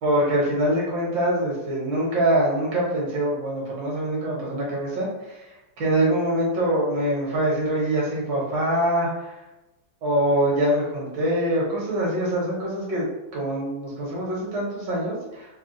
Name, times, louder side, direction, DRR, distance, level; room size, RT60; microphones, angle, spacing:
voice 1, 0.0-5.4 5.8-9.3 10.0-13.1 13.3-15.5, right 1 dB, 70° right, -4 dB, 1.6 m, -24 dB
3.5 x 2.1 x 2.5 m, 0.99 s
omnidirectional pair, 2.1 m